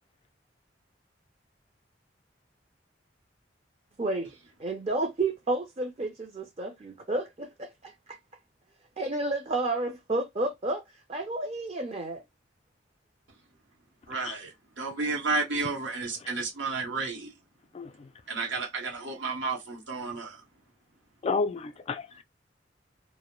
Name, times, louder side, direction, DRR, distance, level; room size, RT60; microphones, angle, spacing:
voice 1, 4.0-4.3 4.6-8.2 9.0-10.8 11.1-12.2, right 2 dB, 35° right, 0.4 m, -31 dB
voice 2, 14.1-17.3 18.3-20.4, right 3 dB, 75° right, 0.8 m, -32 dB
voice 3, 17.7-18.1 21.2-22.2, left 4 dB, 35° left, 0.3 m, -31 dB
2.1 x 2.0 x 2.9 m
head